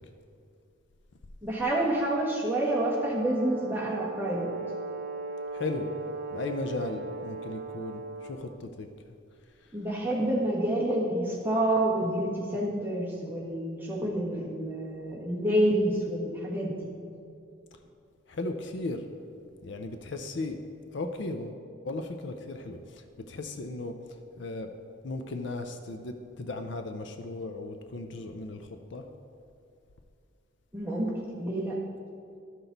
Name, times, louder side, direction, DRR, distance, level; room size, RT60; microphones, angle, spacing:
voice 1, 1.4-4.5 9.7-16.9 30.7-31.8, right 1 dB, 10° right, -5 dB, 1.3 m, -28 dB
Brass instrument, 2.6-8.6, right 3 dB, 50° right, 0.4 m, -38 dB
voice 2, 5.5-5.9 6.3-8.9 18.3-19.0 19.6-20.6 20.9-23.0 23.3-24.0 24.4-24.7 25.0-29.0, left 2 dB, 60° left, 7 dB, 0.5 m, -36 dB
12.5 x 5.9 x 4.0 m, 2.5 s
head